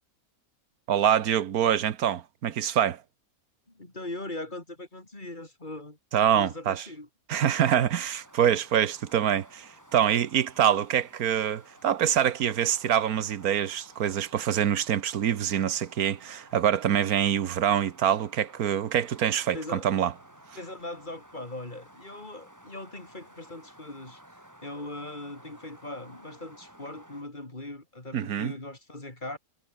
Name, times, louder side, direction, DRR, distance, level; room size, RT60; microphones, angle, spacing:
voice 1, 0.9-3.0 6.1-6.8 7.3-20.1 28.1-28.5, right 9 dB, 85° right, 1.5 m, -25 dB
voice 2, 3.7-6.0 6.3-7.1 19.5-19.9 20.6-24.2 24.6-29.4, left 2 dB, 30° left, 3.9 m, -40 dB
sound 1, 7.9-27.2, equal, 10° right, 5.4 m, -54 dB
omnidirectional pair, 1.5 m